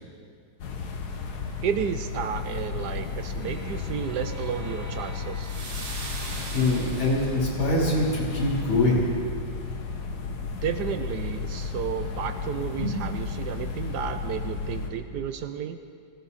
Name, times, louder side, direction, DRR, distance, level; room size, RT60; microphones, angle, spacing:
sound 1, 0.6-14.9, left 5 dB, 60° left, 1.5 m, -33 dB
voice 1, 1.6-5.5 10.3-15.8, right 8 dB, 70° right, 9 dB, 1.0 m, -32 dB
sound 2, 2.9-7.5, right 2 dB, 40° right, 1.6 m, -41 dB
voice 2, 6.5-9.0 12.8-12.9, left 2 dB, 90° left, -5 dB, 4.2 m, -24 dB
19.0 x 15.0 x 4.1 m, 2.3 s
omnidirectional pair, 2.1 m